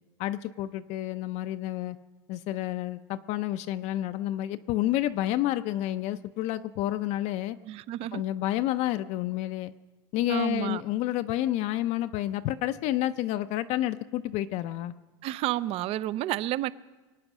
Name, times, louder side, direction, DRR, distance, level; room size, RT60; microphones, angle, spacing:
voice 1, 0.2-2.0 2.3-7.6 8.1-9.7 10.1-14.9, left 14 dB, 50° left, 0.5 m, -29 dB
voice 2, 7.6-8.2 10.3-10.8 15.2-16.7, right 14 dB, 40° right, 0.5 m, -30 dB
23.5 x 8.7 x 6.1 m
supercardioid pair, 135°, 15 cm